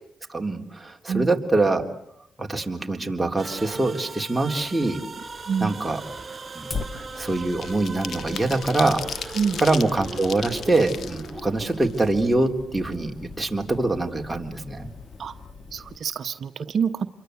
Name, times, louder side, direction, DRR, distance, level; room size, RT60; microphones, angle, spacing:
voice 1, 0.3-1.9 2.4-5.0 5.6-6.0 6.5-14.9, right 2 dB, 10° right, 2 dB, 3.7 m, -24 dB
sound 1, 3.4-12.2, right 4 dB, 40° right, 5.2 m, -39 dB
sound 2, 5.5-5.8 6.1-12.6 12.9-13.0 13.3-14.3 14.6-14.8 15.1-15.4, left 7 dB, 70° left, 1.4 m, -38 dB
Fire, 6.7-16.0, left 4 dB, 45° left, 2.1 m, -41 dB
voice 2, 15.7-17.1, right 6 dB, 65° right, 9 dB, 1.0 m, -26 dB
28.0 x 23.5 x 8.1 m, 0.73 s
cardioid pair, 65°, 0 cm